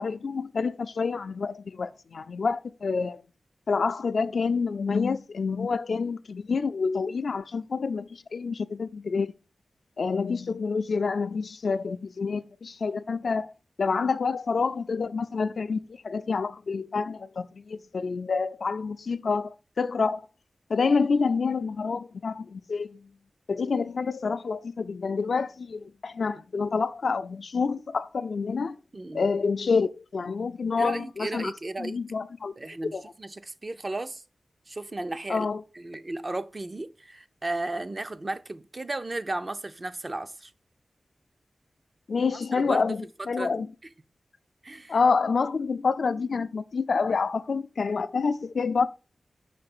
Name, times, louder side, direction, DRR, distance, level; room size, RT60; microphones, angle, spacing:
voice 1, 0.0-3.2 3.7-9.3 10.0-13.5 13.8-20.2 20.7-23.0 23.5-28.8 29.1-31.5 31.8-32.5 32.9-33.0 35.3-35.6 42.1-43.7 44.9-48.9, left 4 dB, 75° left, 0.4 m, -28 dB
voice 2, 28.9-29.3 30.8-32.0 32.6-34.2 34.7-35.5 35.8-40.5 42.3-42.9 43.4-43.7 44.6-45.0, right 2 dB, 40° right, 0.5 m, -34 dB
5.8 x 3.2 x 5.2 m
cardioid pair, 50°, 0 cm